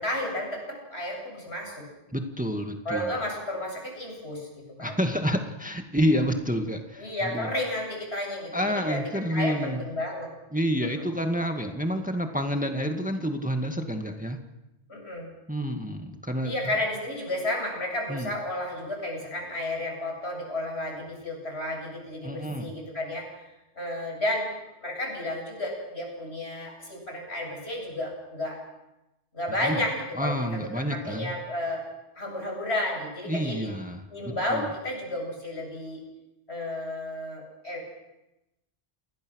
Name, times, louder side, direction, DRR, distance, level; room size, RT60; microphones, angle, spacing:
voice 1, 0.0-1.8 2.8-5.0 7.0-10.3 10.8-11.0 14.9-15.3 16.4-23.5 23.8-24.5 24.8-28.6 29.3-29.9 30.2-30.4 30.9-31.8 32.2-33.7 34.1-36.0 36.5-37.8, left 1 dB, 75° left, 1 dB, 8.4 m, -32 dB
voice 2, 2.1-3.1 4.8-7.5 8.5-9.8 10.5-14.4 15.5-16.5 18.1-18.3 22.2-22.7 29.6-29.8 30.2-31.3 33.3-34.7, equal, 5° right, 4 dB, 1.9 m, -29 dB
28.5 x 21.5 x 6.4 m, 0.96 s
omnidirectional pair, 1.1 m